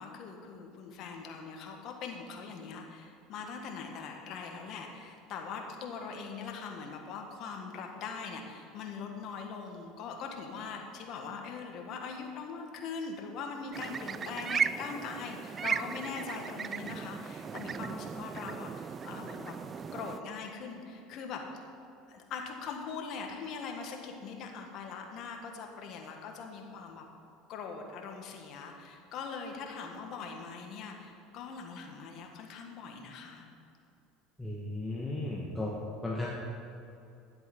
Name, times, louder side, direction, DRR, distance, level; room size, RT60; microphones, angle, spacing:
voice 1, 0.0-19.6 19.9-21.4 22.1-27.0 27.5-33.4, left 5 dB, 55° left, 2 dB, 1.6 m, -41 dB
sound 1, 13.7-20.2, right 6 dB, 30° right, 0.3 m, -36 dB
voice 2, 34.4-35.8 36.0-36.3, left 2 dB, 10° left, -5 dB, 1.5 m, -35 dB
10.5 x 7.9 x 5.3 m, 2.7 s
supercardioid pair, 100°, 0 cm